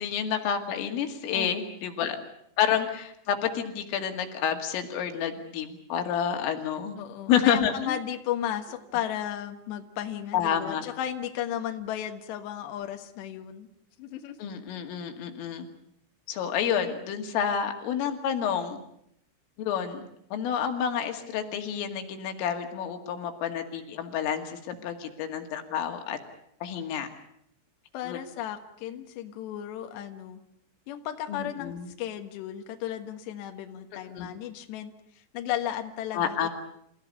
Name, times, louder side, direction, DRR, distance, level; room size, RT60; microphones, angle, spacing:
voice 1, 0.0-2.2 2.6-7.0 7.3-7.9 10.3-10.9 14.4-15.7 16.3-18.8 19.6-20.0 20.3-26.2 26.6-27.1 28.1-28.2 31.3-31.9 34.1-34.3 36.1-36.5, left 8 dB, 85° left, 5 dB, 4.8 m, -29 dB
voice 2, 7.0-13.7 14.0-14.4 27.9-30.4 30.9-36.5, left 10 dB, 70° left, 6 dB, 3.4 m, -34 dB
28.5 x 15.5 x 9.7 m, 0.74 s
omnidirectional pair, 5.7 m